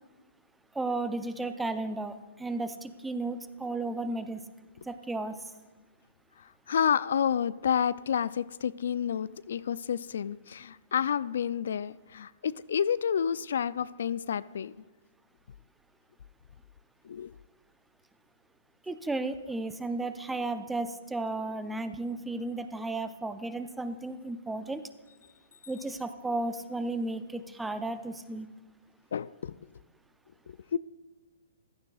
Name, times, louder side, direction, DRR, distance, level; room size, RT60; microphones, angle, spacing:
voice 1, 0.7-4.4 4.8-5.4 18.8-24.8 25.7-28.5, right 2 dB, 5° right, 11 dB, 0.6 m, -34 dB
voice 2, 6.4-14.7 17.0-17.3 29.1-29.5 30.5-30.8, left 8 dB, 70° left, 17 dB, 0.3 m, -30 dB
15.5 x 12.0 x 2.4 m, 1.4 s
hypercardioid pair, 130°, 0 cm